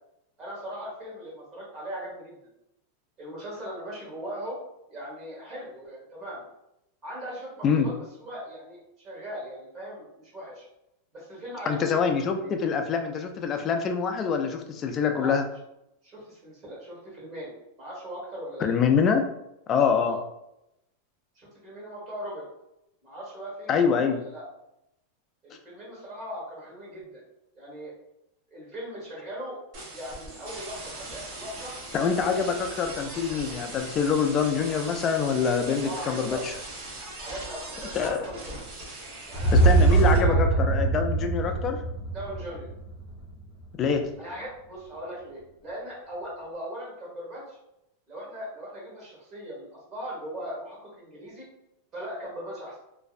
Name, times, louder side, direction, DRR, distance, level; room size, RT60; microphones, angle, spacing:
voice 1, 0.4-2.4 3.2-4.6 4.9-6.4 7.0-7.9 8.2-10.6 11.1-12.5 15.1-15.3 16.0-17.5 17.8-18.8 20.0-20.2 21.3-22.5 23.0-24.4 25.4-27.2 27.5-27.9 28.5-29.6 29.9-31.7 32.3-32.4 35.8-36.4 37.2-38.5 39.3-40.6 41.4-41.5 42.1-42.7 44.2-47.6 48.1-51.5 51.9-52.8, equal, 30° right, -5 dB, 1.2 m, -39 dB
voice 2, 11.7-15.4 18.6-19.2 19.7-20.2 23.7-24.2 31.9-36.5 37.9-38.2 39.5-41.8 43.8-44.0, left 6 dB, 30° left, 5 dB, 0.3 m, -25 dB
sound 1, 29.7-40.2, right 2 dB, 50° right, 0.8 m, -40 dB
sound 2, 39.3-43.4, right 3 dB, 45° left, 1.0 m, -22 dB
2.6 x 2.0 x 2.4 m, 0.84 s
supercardioid pair, 140°, 0 cm